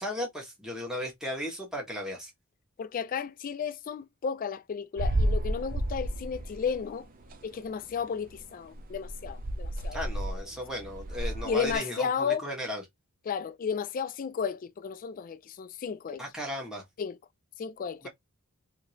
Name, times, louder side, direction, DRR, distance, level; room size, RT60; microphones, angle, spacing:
voice 1, 0.0-2.3 9.9-12.8 16.2-16.8 18.0-18.1, equal, 5° right, 1.2 m, -35 dB
voice 2, 2.8-7.1 7.4-10.0 10.3-10.4 11.4-12.5 13.3-16.2 17.0-17.2 17.6-18.1, left 6 dB, 40° left, 0.3 m, -33 dB
sound 1, 5.0-6.9 7.2-7.4 7.9-8.0 8.3-8.4 8.7-11.8, right 1 dB, 40° right, 0.5 m, -32 dB
2.9 x 2.7 x 2.8 m
head